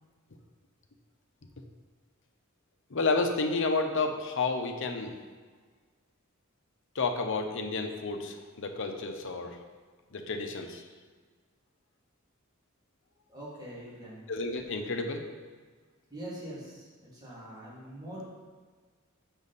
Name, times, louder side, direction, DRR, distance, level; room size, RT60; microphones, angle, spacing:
voice 1, 2.9-5.1 6.9-9.6 10.1-10.8 14.3-15.2, left 3 dB, 65° left, 5 dB, 0.8 m, -30 dB
voice 2, 13.3-14.2 16.1-18.3, right 1 dB, 20° right, -8 dB, 2.3 m, -43 dB
7.0 x 6.2 x 4.0 m, 1.5 s
head